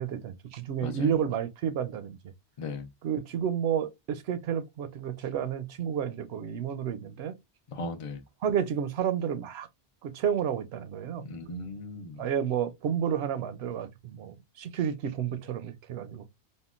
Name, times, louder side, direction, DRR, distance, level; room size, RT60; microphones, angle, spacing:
voice 1, 0.0-2.2 3.0-7.3 8.4-9.7 10.0-11.2 12.2-16.2, right 8 dB, 70° right, 0.8 m, -31 dB
voice 2, 0.8-1.1 2.6-2.9 7.7-8.2 11.2-12.3, left 3 dB, 45° left, 0.4 m, -37 dB
3.6 x 2.1 x 2.3 m
omnidirectional pair, 1.1 m